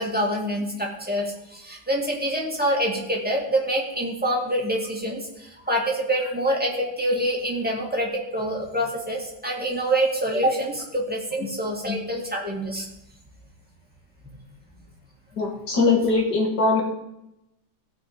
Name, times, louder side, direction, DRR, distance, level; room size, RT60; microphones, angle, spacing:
voice 1, 0.0-12.9, right 1 dB, 5° right, -3 dB, 2.1 m, -26 dB
voice 2, 15.4-16.8, left 3 dB, 75° left, 0 dB, 2.7 m, -21 dB
15.5 x 5.5 x 5.1 m, 0.86 s
omnidirectional pair, 1.8 m